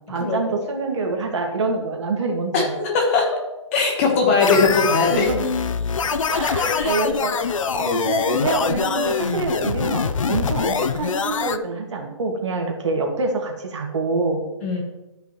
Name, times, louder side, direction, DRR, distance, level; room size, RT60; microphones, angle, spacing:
voice 1, 0.1-2.7 5.1-5.5 6.1-14.4, right 3 dB, 60° right, 2 dB, 1.9 m, -26 dB
voice 2, 2.5-3.3 3.7-5.3 6.6-7.0 14.6-14.8, left 4 dB, 25° left, 2 dB, 1.2 m, -20 dB
sound 1, 4.4-11.6, left 6 dB, 75° left, 0.6 m, -24 dB
13.0 x 5.5 x 3.1 m, 1.0 s
hypercardioid pair, 160°, 17 cm